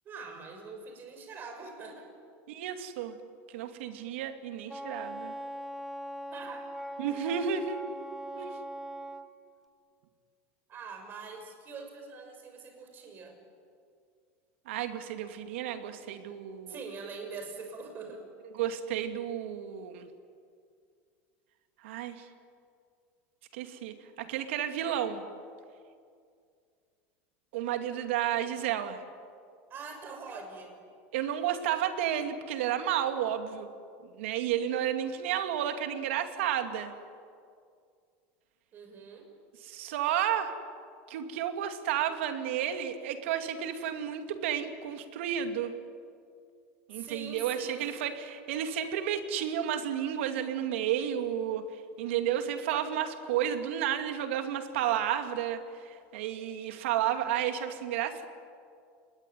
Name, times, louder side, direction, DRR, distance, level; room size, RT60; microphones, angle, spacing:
voice 1, 0.0-2.1 6.3-6.7 10.7-13.4 16.7-18.2 29.7-30.8 38.7-39.3 46.9-47.9, right 4 dB, 30° right, 4 dB, 6.2 m, -43 dB
voice 2, 2.5-3.2 3.5-5.3 7.0-7.8 8.4-8.5 14.7-16.8 18.5-20.1 21.8-22.3 23.5-25.2 27.5-29.0 31.1-33.7 34.1-36.9 39.6-40.5 41.1-45.7 46.9-51.6 52.0-58.2, right 10 dB, 85° right, 7 dB, 2.7 m, -32 dB
Wind instrument woodwind instrument, 4.7-9.3, equal, 5° right, 1.4 m, -40 dB
30.0 x 20.5 x 9.4 m, 2.3 s
supercardioid pair, 150°, 6 cm